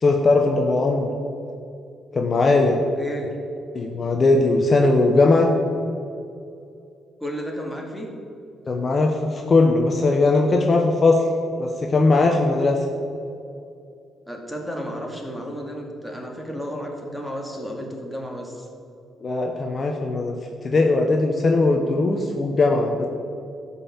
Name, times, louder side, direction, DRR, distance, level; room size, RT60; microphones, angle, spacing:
voice 1, 0.0-1.1 2.1-2.8 3.7-5.5 8.7-11.2 11.6-12.8 19.2-20.3 20.6-23.1, left 3 dB, 40° left, 2 dB, 1.1 m, -19 dB
voice 2, 3.0-3.3 7.2-8.2 14.3-18.7, equal, ahead, 0 dB, 2.3 m, -32 dB
13.0 x 5.7 x 7.2 m, 2.6 s
cardioid pair, 90°, 0 cm